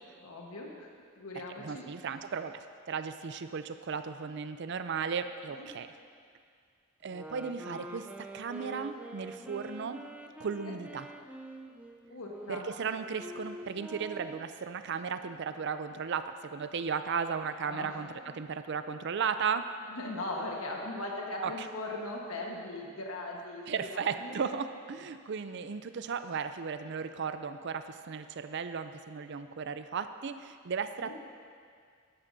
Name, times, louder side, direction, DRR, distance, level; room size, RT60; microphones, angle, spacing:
voice 1, 0.2-0.9 1.2-1.8 5.5-5.7 10.6-10.8 12.1-12.7 17.7-17.9 19.9-24.4 31.0-31.1, left 2 dB, 85° left, -1 dB, 1.3 m, -39 dB
voice 2, 1.4-5.9 7.0-10.0 10.4-11.1 12.5-19.7 21.4-21.7 23.7-31.2, right 6 dB, 55° right, 10 dB, 0.4 m, -35 dB
sound 1, 7.1-14.7, right 1 dB, 5° right, 0.5 m, -46 dB
13.0 x 11.0 x 2.7 m, 2.2 s
head